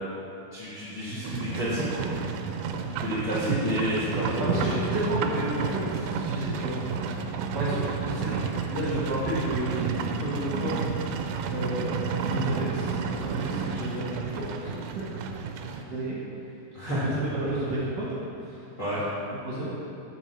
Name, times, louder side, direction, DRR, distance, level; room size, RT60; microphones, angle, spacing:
voice 1, 0.5-2.1 3.0-4.7 16.7-17.0 18.8-19.0, equal, 30° left, -10 dB, 1.6 m, -30 dB
Livestock farm animals working animals, 1.2-15.8, right 5 dB, 85° right, 2.3 m, -31 dB
voice 2, 4.4-6.8 7.1-7.2 7.5-10.8 11.5-12.0 12.3-14.9 15.7-16.2 16.8-18.1 18.5-18.6 19.5-19.7, right 1 dB, 60° right, -7 dB, 2.0 m, -31 dB
7.4 x 5.6 x 6.7 m, 2.7 s
omnidirectional pair, 4.2 m